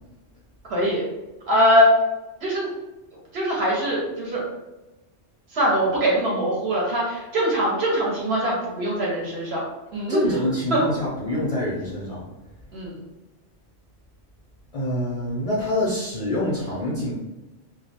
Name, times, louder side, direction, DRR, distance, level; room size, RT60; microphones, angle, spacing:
voice 1, 0.7-1.0 1.5-1.9 2.4-2.7 3.3-4.5 5.5-9.6 9.9-10.4 10.7-10.8 12.7-13.0, equal, 60° right, -4 dB, 0.9 m, -22 dB
voice 2, 10.1-12.2 14.7-17.1, left 1 dB, 65° left, -7 dB, 0.3 m, -26 dB
2.3 x 2.0 x 2.7 m, 1.0 s
omnidirectional pair, 1.3 m